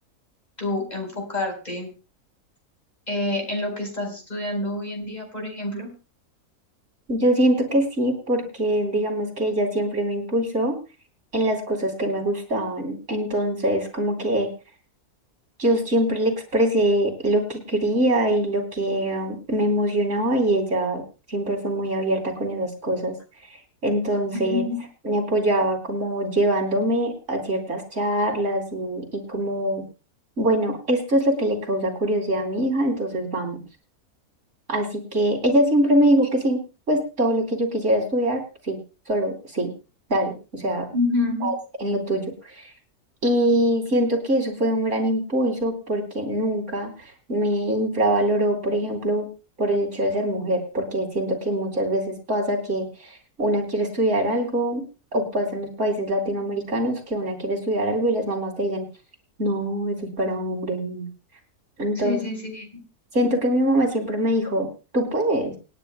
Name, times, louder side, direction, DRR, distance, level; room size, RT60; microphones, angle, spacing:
voice 1, 0.6-1.9 3.1-5.9 24.3-24.8 40.9-41.5 61.9-62.8, left 2 dB, 25° left, 2 dB, 4.5 m, -28 dB
voice 2, 7.1-10.8 11.3-14.5 15.6-23.2 23.5-24.7 25.0-29.8 30.4-33.6 34.7-38.8 39.1-39.7 40.1-40.9 41.4-41.6 41.8-42.7 43.2-49.3 49.6-54.8 55.1-58.9 59.4-61.1 61.8-62.2 63.1-65.6, right 1 dB, 50° right, 1 dB, 3.5 m, -23 dB
28.0 x 10.0 x 2.2 m, 0.32 s
omnidirectional pair, 1.6 m